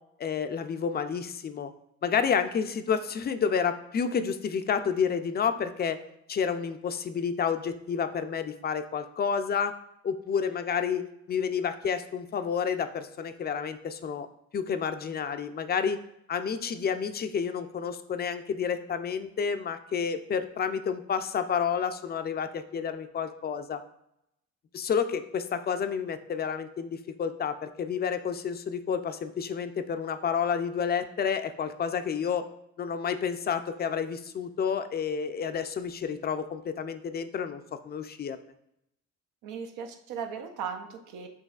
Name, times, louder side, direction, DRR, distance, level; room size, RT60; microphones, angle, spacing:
voice 1, 0.2-1.7 2.0-6.0 6.3-9.7 10.0-14.3 14.5-16.0 16.3-23.8 24.7-32.5 32.8-38.4, left 6 dB, 35° left, 9 dB, 0.4 m, -30 dB
voice 2, 39.4-41.3, right 6 dB, 85° right, 4 dB, 0.6 m, -37 dB
6.4 x 2.7 x 2.4 m, 0.79 s
cardioid pair, 90°, 30 cm